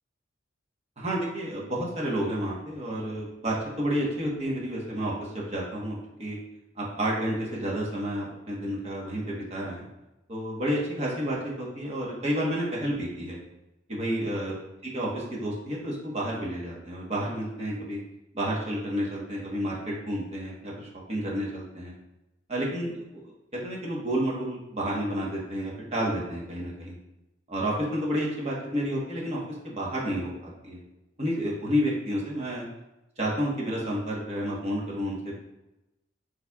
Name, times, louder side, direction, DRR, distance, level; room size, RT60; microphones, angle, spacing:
voice 1, 1.0-6.4 6.8-9.8 10.3-13.4 13.9-14.5 14.9-18.0 18.3-21.9 22.5-23.0 23.5-26.9 27.5-30.8 31.2-32.6 33.2-35.4, equal, 35° right, -4 dB, 1.2 m, -30 dB
6.8 x 3.3 x 2.4 m, 0.95 s
head